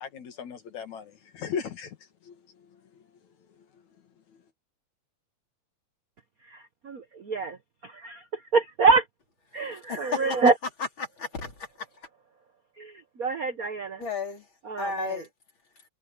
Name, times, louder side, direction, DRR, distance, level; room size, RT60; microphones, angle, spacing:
voice 1, 0.0-2.0 2.2-2.4, left 7 dB, 75° left, 3.3 m, -36 dB
voice 2, 6.5-7.6 7.8-9.0 9.5-10.5 12.8-14.0 14.6-15.2, right 4 dB, 75° right, 0.8 m, -26 dB
voice 3, 9.9-10.2 11.0-11.9 14.0-14.5 14.8-15.3, left 4 dB, 40° left, 4.5 m, -33 dB
omnidirectional pair, 3.4 m